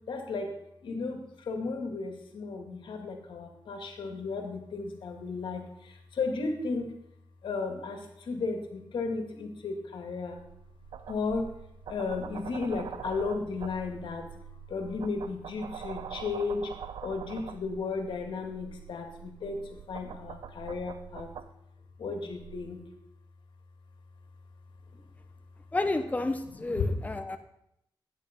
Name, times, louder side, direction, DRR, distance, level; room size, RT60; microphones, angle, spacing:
voice 1, 0.1-6.9 7.4-10.4 11.1-11.5 11.9-14.3 14.7-21.3 22.0-22.8 26.7-27.0, left 4 dB, 80° left, 4 dB, 2.1 m, -34 dB
sound 1, 10.4-21.5 22.3-22.7, right 8 dB, 80° right, 0.7 m, -44 dB
voice 2, 25.7-27.4, left 2 dB, 20° left, 6 dB, 0.9 m, -30 dB
11.5 x 9.5 x 5.3 m, 0.77 s
cardioid pair, 80°, 8 cm